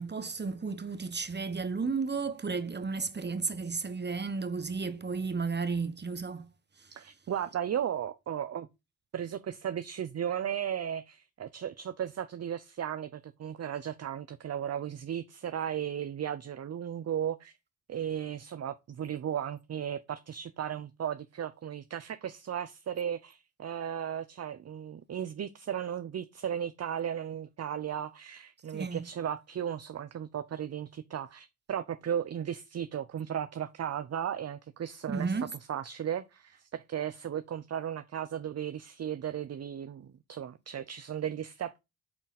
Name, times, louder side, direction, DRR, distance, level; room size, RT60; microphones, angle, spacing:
voice 1, 0.0-6.5 28.7-29.0 35.1-35.5, right 4 dB, 30° right, 1.2 m, -33 dB
voice 2, 6.9-8.7 9.1-17.6 17.9-35.3 35.7-41.8, right 9 dB, 45° right, 0.6 m, -35 dB
8.6 x 3.9 x 4.0 m
supercardioid pair, 60°, 37 cm